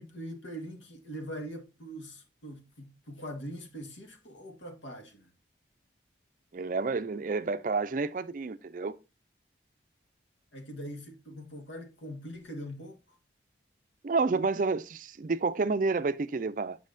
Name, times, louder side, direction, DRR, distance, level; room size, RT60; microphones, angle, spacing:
voice 1, 0.0-5.3 10.5-13.2, equal, 90° left, 1.5 m, -42 dB
voice 2, 6.5-9.0 14.0-16.8, right 4 dB, 45° right, 0.4 m, -29 dB
7.4 x 5.6 x 2.5 m
head